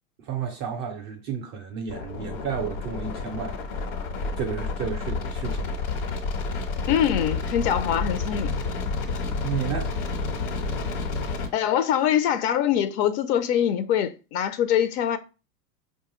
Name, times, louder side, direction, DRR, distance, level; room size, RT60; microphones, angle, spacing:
voice 1, 0.2-3.9 4.4-5.8 9.4-10.0, right 7 dB, 25° right, 0.3 m, -32 dB
sound 1, 1.9-11.5, left 4 dB, 70° left, 1.2 m, -30 dB
voice 2, 6.8-8.6 11.5-15.2, left 10 dB, 50° left, 0.5 m, -23 dB
4.5 x 2.3 x 3.0 m
hypercardioid pair, 100°, 48 cm